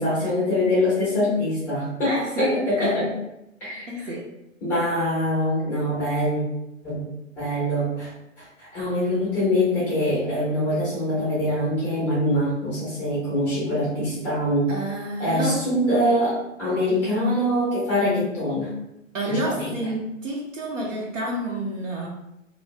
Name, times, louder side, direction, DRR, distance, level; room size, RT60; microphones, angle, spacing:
voice 1, 0.0-3.1 3.6-3.9 4.6-6.4 6.8-7.0 7.4-8.1 8.4-14.7 15.2-18.7 19.3-19.7, left 1 dB, 5° left, -8 dB, 0.5 m, -24 dB
voice 2, 2.0-3.0 3.9-4.3 14.0-14.1 14.7-15.6 19.1-22.1, right 1 dB, 70° right, -3 dB, 0.8 m, -29 dB
2.4 x 2.3 x 3.2 m, 0.86 s
figure-of-eight pair, 130°, 39 cm